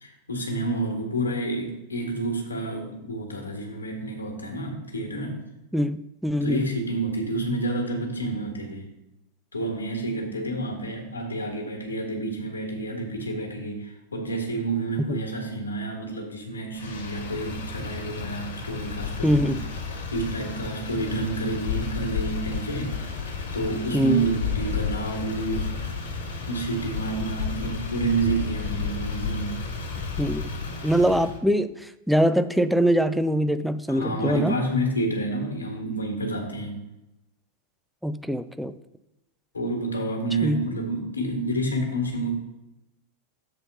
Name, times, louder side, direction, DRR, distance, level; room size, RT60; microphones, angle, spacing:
voice 1, 0.0-5.4 6.4-8.9 9.5-19.6 20.1-23.0 23.3-25.9 26.5-29.6 33.9-36.8 39.5-42.3, right 2 dB, 75° left, 2 dB, 1.8 m, -29 dB
voice 2, 5.7-6.6 15.1-15.2 19.2-19.6 23.9-24.3 30.2-30.5 30.8-34.6 38.0-38.7 40.4-40.6, equal, ahead, 11 dB, 0.4 m, -23 dB
Motor vehicle (road), 16.7-31.4, left 5 dB, 60° left, 1.6 m, -32 dB
7.6 x 4.2 x 5.6 m, 0.93 s
figure-of-eight pair, 90°, 0 cm